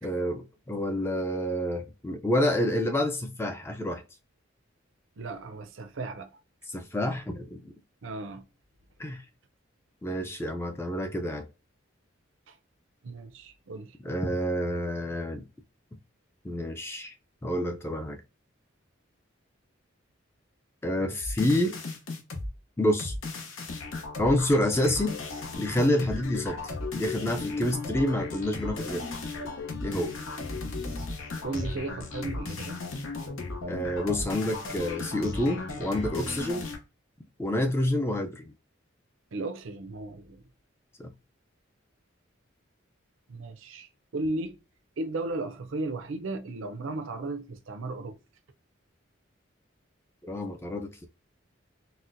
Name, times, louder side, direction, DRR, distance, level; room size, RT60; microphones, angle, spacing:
voice 1, 0.0-4.0 6.7-7.7 9.0-9.2 10.0-11.5 14.0-15.5 16.4-17.1 17.4-18.2 20.8-21.8 22.8-23.1 24.2-25.2 25.6-29.0 29.8-30.1 33.7-36.7 37.4-38.5 41.0-41.1 50.2-51.1, left 1 dB, 10° left, 0.3 m, -28 dB
voice 2, 5.2-6.3 8.0-8.4 12.5-12.6 13.0-14.0 31.4-32.8 39.3-40.4 43.3-44.6 45.0-48.2, right 2 dB, 75° right, 0.5 m, -35 dB
sound 1, 21.2-22.5 23.0-36.8, left 3 dB, 90° left, 0.8 m, -36 dB
4.1 x 2.1 x 2.5 m
head